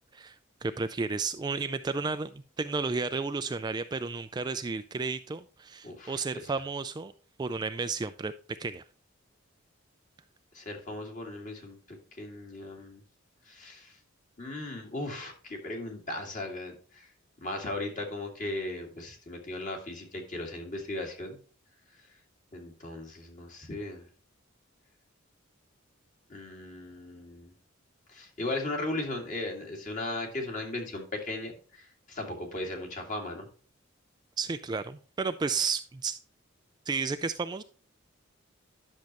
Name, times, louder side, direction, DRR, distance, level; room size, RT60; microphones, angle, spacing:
voice 1, 0.6-7.1 7.4-8.3 8.6-8.8 34.4-36.2 36.9-37.6, right 4 dB, 20° right, 10 dB, 0.3 m, -32 dB
voice 2, 5.8-6.5 10.5-13.0 13.4-14.0 14.4-17.1 17.4-21.4 22.0-22.2 22.5-24.1 26.3-27.5 28.1-33.5, left 2 dB, 40° left, 2 dB, 2.2 m, -37 dB
10.5 x 6.4 x 3.0 m, 0.40 s
head